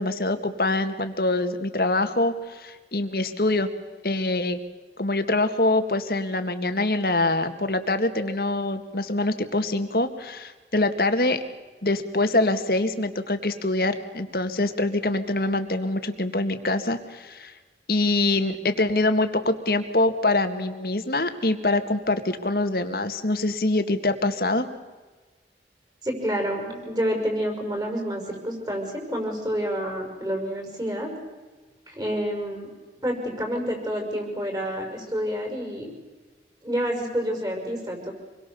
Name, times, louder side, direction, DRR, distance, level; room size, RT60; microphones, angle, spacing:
voice 1, 0.0-3.7 4.0-4.6 5.0-11.4 11.8-17.5 17.9-24.7, left 2 dB, 55° left, 8 dB, 1.9 m, -24 dB
voice 2, 26.0-31.1 31.9-32.7 33.0-35.9 36.6-38.1, equal, 20° right, 3 dB, 5.8 m, -28 dB
27.0 x 22.0 x 7.0 m, 1.3 s
head